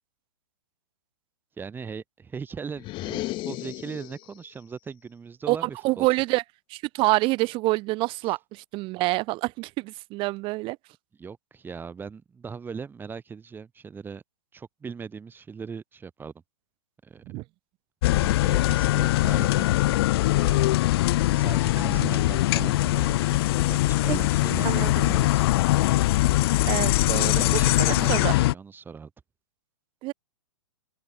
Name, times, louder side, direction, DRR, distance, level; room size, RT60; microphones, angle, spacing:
voice 1, 1.6-6.1 11.2-14.2 14.5-16.3 17.0-17.2 18.2-19.7 20.2-20.7 21.2-25.5 27.0-29.1, right 5 dB, 10° right, 5.3 m, -39 dB
sound 1, 2.8-4.4, left 18 dB, 30° left, 3.0 m, -34 dB
voice 2, 5.5-6.4 6.7-10.8 17.3-17.4 18.1-18.3 24.1-24.2 24.6-25.1 26.6-27.4 27.8-28.3 30.0-30.1, right 22 dB, 30° right, 1.6 m, -27 dB
sound 2, 18.0-28.5, left 17 dB, 50° left, 1.9 m, -22 dB
open air
hypercardioid pair, 135°, 17 cm